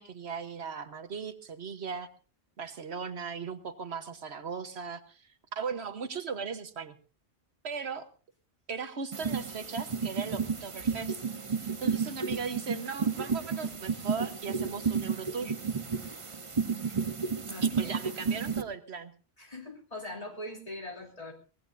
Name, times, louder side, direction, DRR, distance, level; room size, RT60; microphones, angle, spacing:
voice 1, 0.0-2.1 2.6-7.0 7.6-8.1 8.7-11.2 11.6-15.6 17.6-19.1, right 5 dB, 80° right, 10 dB, 1.4 m, -38 dB
sound 1, 9.1-18.6, right 5 dB, 30° right, 1.0 m, -32 dB
voice 2, 17.4-17.9 19.4-21.3, left 1 dB, 35° left, 2 dB, 3.2 m, -41 dB
23.5 x 18.0 x 2.6 m, 0.34 s
omnidirectional pair, 1.1 m